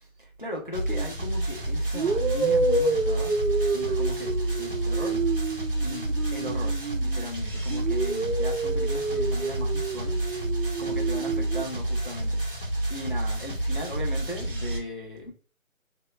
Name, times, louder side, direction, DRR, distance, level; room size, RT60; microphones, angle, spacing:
voice 1, 0.2-3.3 3.7-5.2 5.8-10.2 10.8-12.4 12.9-15.3, left 1 dB, 40° left, 0.4 m, -37 dB
sound 1, 0.7-14.8, right 1 dB, 40° right, 0.6 m, -29 dB
sound 2, 0.9-1.1 1.9-7.3 7.7-11.6, right 3 dB, 80° right, 0.7 m, -28 dB
3.0 x 2.0 x 2.2 m
figure-of-eight pair, 170°, 42 cm